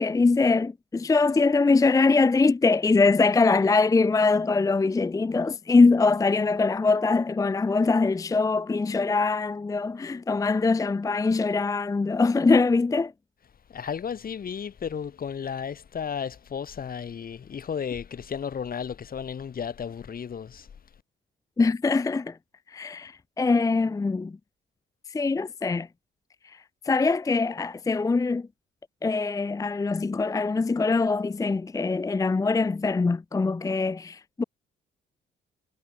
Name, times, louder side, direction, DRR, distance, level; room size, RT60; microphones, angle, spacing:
voice 1, 0.0-13.1 21.6-22.4 22.7-24.4 25.1-25.9 26.9-28.5 29.0-34.4, left 3 dB, 15° left, 0.5 m, -23 dB
voice 2, 13.7-20.7, left 7 dB, 45° left, 2.5 m, -33 dB
cardioid pair, 90°, 20 cm